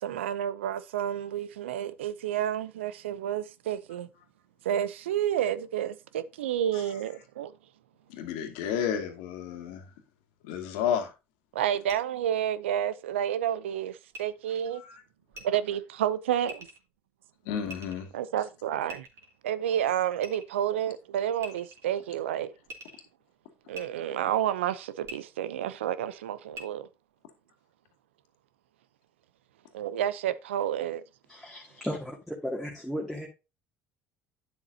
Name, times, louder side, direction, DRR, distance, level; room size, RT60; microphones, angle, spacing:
voice 1, 0.0-4.1 4.6-7.5 11.5-14.8 15.4-16.7 18.1-19.1 19.4-22.5 23.7-26.9 29.7-31.0, right 10 dB, 85° right, 0.6 m, -30 dB
voice 2, 8.1-9.8 10.4-11.1 14.7-15.0 17.5-18.1, left 8 dB, 75° left, 2.1 m, -31 dB
sound 1, 11.9-12.0 14.1-14.2 15.3-15.4 16.5-16.8 17.7-18.1 18.9-19.4 20.2-20.6 21.4-21.9 22.7-23.0 23.7-23.8 25.0-25.2 26.5-26.6, right 1 dB, 45° right, 3.2 m, -43 dB
voice 3, 31.3-33.3, equal, ahead, 2.3 m, -35 dB
9.4 x 7.3 x 2.8 m
hypercardioid pair, 70°, 6 cm